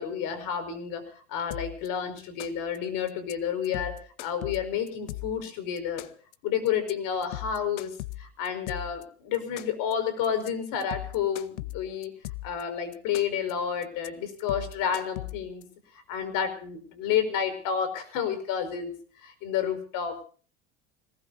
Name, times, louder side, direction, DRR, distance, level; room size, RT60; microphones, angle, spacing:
voice 1, 0.0-6.1 6.4-12.1 12.4-15.7 15.9-18.9 19.2-20.2, left 8 dB, 65° left, 11 dB, 5.4 m, -30 dB
sound 1, 1.5-1.9 2.2-2.8 3.1-3.3 3.6-5.5 5.8-6.3 6.7-6.9 7.2-9.0 9.3-9.9 10.2-10.5 10.8-12.6 12.9-13.5 13.8-14.1 14.4-15.6, left 17 dB, 85° left, 1.0 m, -38 dB
26.0 x 19.0 x 2.7 m, 0.42 s
supercardioid pair, 90°, 35 cm